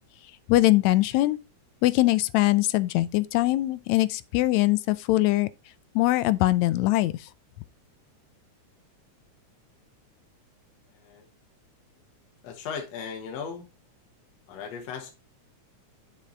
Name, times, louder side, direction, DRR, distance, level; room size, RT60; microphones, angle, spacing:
voice 1, 0.5-1.4 1.8-5.5 6.0-7.1, left 17 dB, 80° left, 1.8 m, -22 dB
voice 2, 10.9-11.3 12.4-13.7 14.5-15.1, left 6 dB, 65° left, 2.5 m, -37 dB
7.3 x 5.7 x 3.9 m
omnidirectional pair, 3.4 m